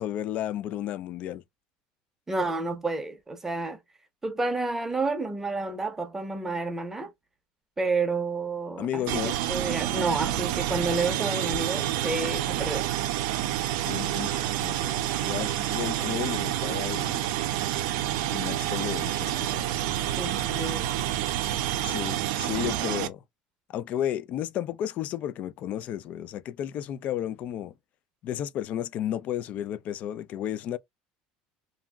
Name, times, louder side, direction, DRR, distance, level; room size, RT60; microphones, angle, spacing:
voice 1, 0.0-1.4 8.8-9.4 13.9-17.4 18.3-19.9 21.8-23.2 23.7-27.7 28.2-30.8, left 11 dB, 45° left, 0.3 m, -33 dB
voice 2, 2.3-3.8 4.2-7.1 7.8-12.9 20.2-20.9, right 3 dB, 10° right, 0.6 m, -30 dB
sound 1, 9.1-23.1, right 13 dB, 80° right, 0.4 m, -28 dB
2.8 x 2.6 x 2.2 m
cardioid pair, 145°, 3 cm